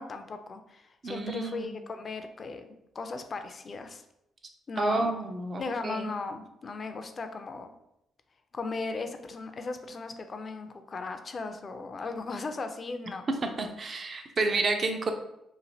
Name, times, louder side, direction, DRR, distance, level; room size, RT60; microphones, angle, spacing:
voice 1, 0.0-4.0 4.7-5.1 5.6-7.7 8.5-13.3, left 3 dB, 40° left, 7 dB, 0.3 m, -37 dB
voice 2, 1.0-1.8 4.8-6.1 13.6-15.1, right 3 dB, 40° right, 5 dB, 0.4 m, -30 dB
3.0 x 2.5 x 2.7 m, 0.83 s
cardioid pair, 90°, 0 cm